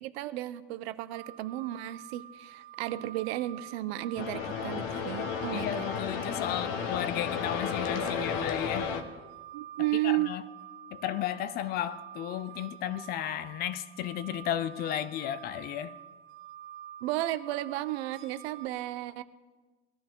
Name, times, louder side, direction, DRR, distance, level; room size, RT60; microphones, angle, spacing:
voice 1, 0.0-5.8 9.5-10.4 17.0-19.2, right 15 dB, 80° right, 0.8 m, -33 dB
sound 1, 1.1-18.7, right 11 dB, 40° right, 2.6 m, -48 dB
sound 2, 4.2-9.0, left 6 dB, 50° left, 1.2 m, -33 dB
voice 2, 5.5-8.9 10.0-10.4 10.9-15.9, left 11 dB, 30° left, 0.4 m, -34 dB
20.5 x 13.0 x 3.8 m
cardioid pair, 170°, 31 cm